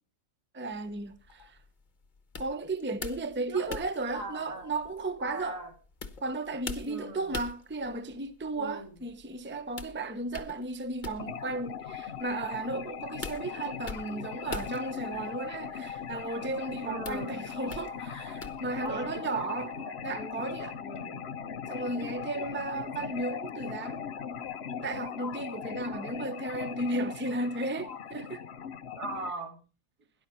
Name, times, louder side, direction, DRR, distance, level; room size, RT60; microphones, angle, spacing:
voice 1, 0.5-1.6 2.4-5.6 6.2-19.7 20.0-20.8 21.7-24.1 24.8-28.5, right 2 dB, 10° right, 0.9 m, -34 dB
sound 1, 0.7-19.2, left 4 dB, 30° left, 1.2 m, -45 dB
voice 2, 3.5-3.9 4.1-4.7 5.2-5.7 6.9-7.3 8.5-9.0 16.8-17.4 18.8-20.5 20.8-21.2 25.8-26.2 29.0-29.6, right 2 dB, 80° right, 3.3 m, -40 dB
sound 2, 11.2-29.3, left 7 dB, 50° left, 0.9 m, -39 dB
18.0 x 10.5 x 4.2 m
omnidirectional pair, 1.7 m